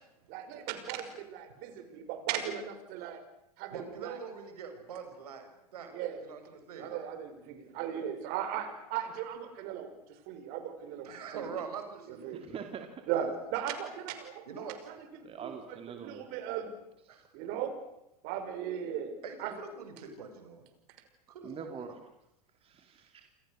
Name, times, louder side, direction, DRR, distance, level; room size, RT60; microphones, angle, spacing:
voice 1, 0.3-3.2 3.6-4.2 5.9-6.2 6.8-9.9 10.3-11.1 11.4-11.5 12.2-12.4 13.1-14.9 15.4-16.7 17.3-17.7 18.2-19.5, right 9 dB, 50° right, 8 dB, 5.8 m, -37 dB
voice 2, 3.7-5.9 6.2-6.9 11.0-12.6 13.1-13.3 14.5-14.8 17.1-17.3 19.2-20.6 21.3-22.0, right 6 dB, 70° right, 6 dB, 6.4 m, -44 dB
voice 3, 12.3-13.0 15.2-16.2 17.1-17.2 21.4-22.0 22.6-23.3, right 6 dB, 30° right, 5 dB, 3.0 m, -44 dB
29.0 x 26.5 x 6.6 m, 0.84 s
figure-of-eight pair, 90°, 20 cm